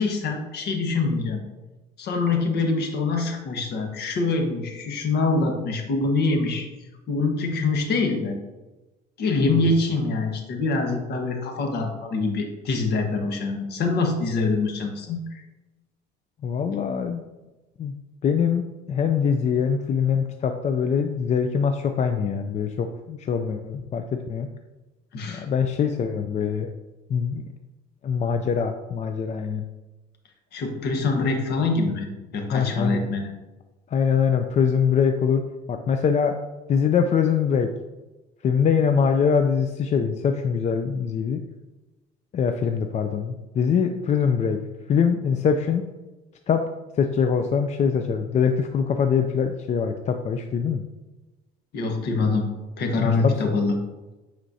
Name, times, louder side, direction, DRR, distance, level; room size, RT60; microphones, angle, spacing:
voice 1, 0.0-1.4 2.0-6.7 7.1-8.4 9.2-15.4 25.1-25.4 30.5-33.3 51.7-53.8, left 3 dB, 60° left, 3 dB, 1.3 m, -25 dB
voice 2, 9.4-9.7 16.4-17.2 17.8-17.9 18.2-24.5 25.3-26.7 27.1-27.5 28.0-29.6 32.5-33.1 33.9-35.4 35.7-36.3 36.7-37.7 38.4-41.4 42.3-44.6 44.9-45.8 46.5-46.6 47.0-50.8 53.0-53.5, left 6 dB, 40° left, 6 dB, 0.4 m, -23 dB
8.9 x 4.3 x 2.7 m, 1.1 s
cardioid pair, 105°, 19 cm